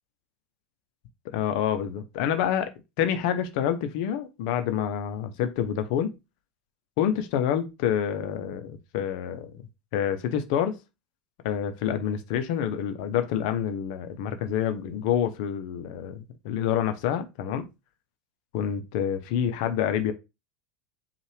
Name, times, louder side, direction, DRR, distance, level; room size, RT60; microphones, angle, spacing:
voice 1, 1.3-6.1 7.0-9.5 9.9-10.8 11.4-17.7 18.5-20.1, left 9 dB, 65° left, 0.7 m, -27 dB
5.3 x 2.4 x 3.4 m
hypercardioid pair, 95°, 5 cm